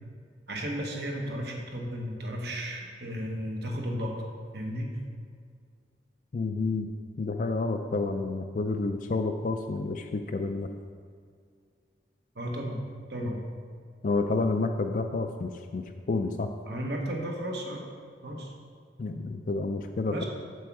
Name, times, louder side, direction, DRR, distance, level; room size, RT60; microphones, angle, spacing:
voice 1, 0.5-4.2 4.5-4.9 12.3-12.8 13.1-13.4 16.7-17.8 18.2-18.5 20.1-20.2, equal, 60° right, 1 dB, 1.2 m, -34 dB
voice 2, 6.3-6.9 7.2-10.7 13.2-13.3 14.0-16.5 19.0-20.2, left 3 dB, 45° left, 5 dB, 0.4 m, -29 dB
7.7 x 7.1 x 4.7 m, 2.2 s
head